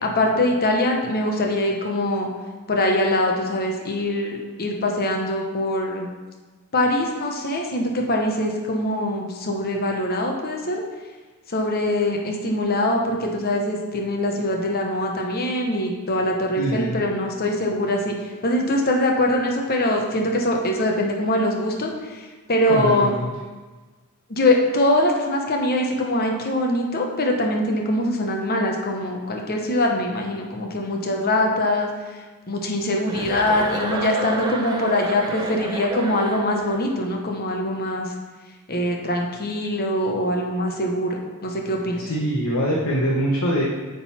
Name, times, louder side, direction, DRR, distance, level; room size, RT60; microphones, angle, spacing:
voice 1, 0.0-2.3 2.7-6.1 6.7-10.8 11.5-18.1 18.4-23.1 24.3-31.9 32.5-38.1 38.7-42.1, left 1 dB, 45° left, 1 dB, 1.0 m, -23 dB
voice 2, 16.5-17.0 22.7-23.3 42.0-43.6, equal, 70° left, -4 dB, 1.0 m, -23 dB
Chuckle chortle, 33.1-36.8, right 2 dB, 20° right, 0.6 m, -30 dB
9.0 x 3.9 x 4.2 m, 1.3 s
head